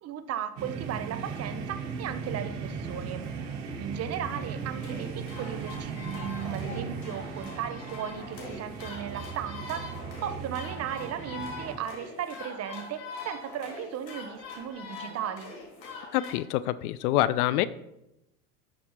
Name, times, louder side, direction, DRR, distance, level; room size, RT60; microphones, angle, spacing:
voice 1, 0.0-3.3 3.8-9.9 10.2-15.5, right 9 dB, 30° right, 11 dB, 0.7 m, -36 dB
sound 1, 0.6-11.8, right 5 dB, 65° right, 1.6 m, -37 dB
sound 2, 4.8-16.3, left 3 dB, 85° left, 2.6 m, -43 dB
voice 2, 16.1-17.7, left 14 dB, 65° left, 17 dB, 0.5 m, -26 dB
11.0 x 6.3 x 3.0 m, 0.87 s
hypercardioid pair, 90°, 50 cm